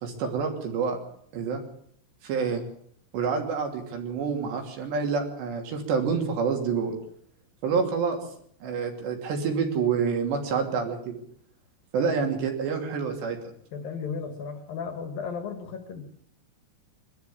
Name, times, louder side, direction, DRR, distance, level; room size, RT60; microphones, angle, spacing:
voice 1, 0.0-1.0 1.3-1.6 2.2-2.7 3.1-7.0 7.6-8.2 8.6-11.1 11.9-13.4, right 5 dB, 65° right, 3 dB, 4.9 m, -27 dB
voice 2, 13.7-16.0, left 5 dB, 60° left, 7 dB, 2.9 m, -35 dB
23.5 x 13.0 x 8.6 m, 0.65 s
omnidirectional pair, 5.6 m